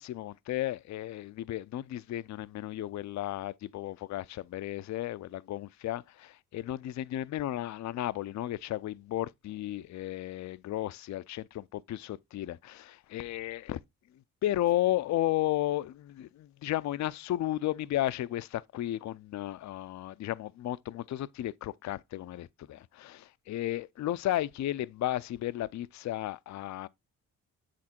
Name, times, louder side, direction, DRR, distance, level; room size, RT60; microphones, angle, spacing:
voice 1, 0.0-13.8 14.4-26.9, left 14 dB, 50° left, 0.4 m, -34 dB
7.5 x 3.6 x 4.3 m
supercardioid pair, 60°, 37 cm